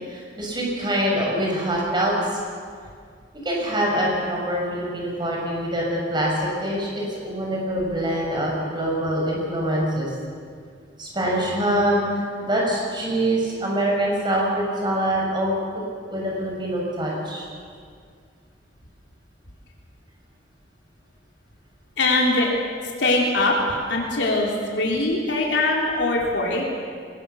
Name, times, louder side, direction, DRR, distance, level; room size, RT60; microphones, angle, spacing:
voice 1, 0.1-2.4 3.4-10.1 11.0-15.5 16.1-17.5, right 1 dB, 25° right, -2 dB, 6.4 m, -24 dB
voice 2, 22.0-22.5 23.0-26.6, left 2 dB, 80° left, -1 dB, 3.4 m, -22 dB
22.5 x 19.5 x 7.0 m, 2.1 s
head